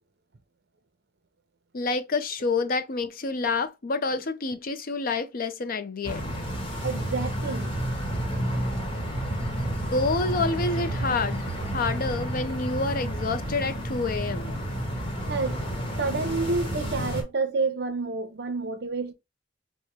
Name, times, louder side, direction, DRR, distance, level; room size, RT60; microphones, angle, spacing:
voice 1, 1.7-6.4 9.9-11.4 11.7-14.5, left 3 dB, 50° left, 0.5 m, -28 dB
sound 1, 6.0-17.2, right 1 dB, 25° left, 1.1 m, -30 dB
voice 2, 6.8-7.8 15.3-15.6 16.0-19.1, right 3 dB, 60° right, 0.7 m, -29 dB
5.0 x 2.1 x 3.0 m
head